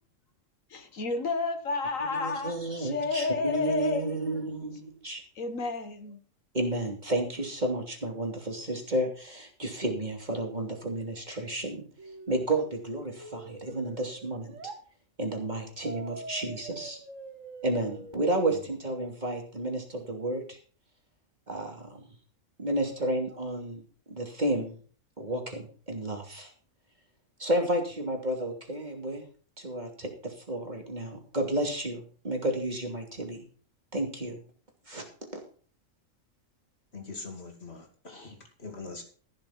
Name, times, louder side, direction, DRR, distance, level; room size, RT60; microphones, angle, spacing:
voice 1, 0.7-4.3 5.4-6.2, left 4 dB, 85° left, 1.9 m, -31 dB
voice 2, 2.1-5.2 6.5-11.8 12.3-14.6 15.2-17.0 17.6-20.6 21.5-22.0 22.6-24.8 25.2-26.5 27.4-29.2 29.6-33.4 33.9-34.4 34.9-35.0, right 1 dB, 35° right, 3.1 m, -31 dB
sound 1, 12.0-14.8 15.8-18.8, right 3 dB, 75° right, 1.9 m, -45 dB
voice 3, 36.9-39.0, left 3 dB, 55° left, 2.7 m, -42 dB
14.5 x 7.2 x 5.9 m
omnidirectional pair, 1.3 m